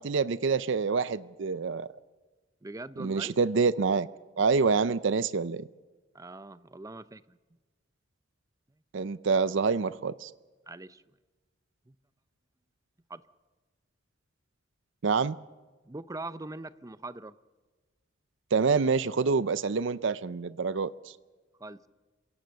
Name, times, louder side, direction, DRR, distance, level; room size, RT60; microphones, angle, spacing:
voice 1, 0.0-1.9 3.0-4.1 4.4-5.7 8.9-10.3 15.0-15.4 18.5-21.1, right 5 dB, 70° right, 15 dB, 0.6 m, -27 dB
voice 2, 2.6-3.4 6.1-7.4 10.7-11.0 11.9-12.0 13.1-13.2 15.9-17.3 21.6-21.9, right 2 dB, 20° right, 14 dB, 0.6 m, -42 dB
27.5 x 17.0 x 6.5 m, 1.3 s
head